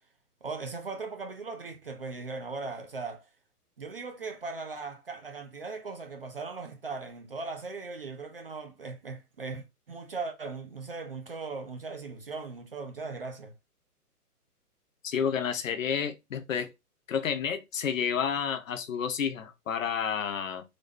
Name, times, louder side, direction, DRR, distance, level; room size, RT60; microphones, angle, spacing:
voice 1, 0.4-3.3 3.8-13.5, right 4 dB, 40° right, 0.5 m, -38 dB
voice 2, 15.0-16.7 17.1-20.6, left 7 dB, 60° left, 0.6 m, -30 dB
3.9 x 2.1 x 3.4 m
hypercardioid pair, 165°, 46 cm